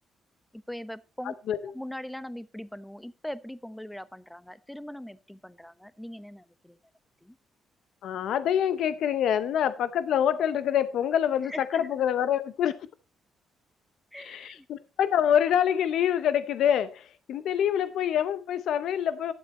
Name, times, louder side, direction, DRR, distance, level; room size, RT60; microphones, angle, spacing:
voice 1, 0.5-1.3 1.7-6.8 7.2-7.4 11.5-11.9 14.1-14.7, left 1 dB, 5° left, 0.9 m, -41 dB
voice 2, 8.0-12.7 14.2-19.3, left 9 dB, 75° left, 0.7 m, -26 dB
12.0 x 7.5 x 4.3 m
cardioid pair, 90°, 0 cm